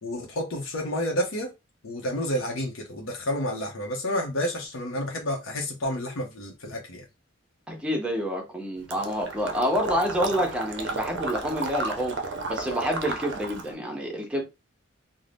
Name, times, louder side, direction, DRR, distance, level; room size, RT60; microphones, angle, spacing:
voice 1, 0.0-1.5 1.8-7.0, equal, 75° left, 0.7 m, -30 dB
voice 2, 7.7-12.2 12.5-14.4, equal, 5° right, 0.6 m, -28 dB
Water / Liquid, 8.9-13.7, right 3 dB, 60° right, 0.5 m, -33 dB
2.6 x 2.1 x 3.3 m
head